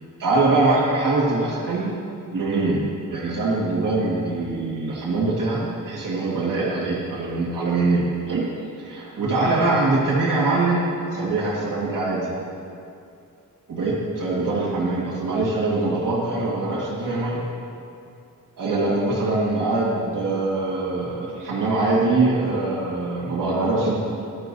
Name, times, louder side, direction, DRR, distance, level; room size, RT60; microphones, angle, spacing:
voice 1, 0.2-1.9 2.3-8.4 8.8-12.3 13.7-17.4 18.6-24.0, right 2 dB, 70° right, -6 dB, 1.8 m, -23 dB
13.0 x 11.0 x 2.7 m, 2.6 s
wide cardioid pair, 175°, 33 cm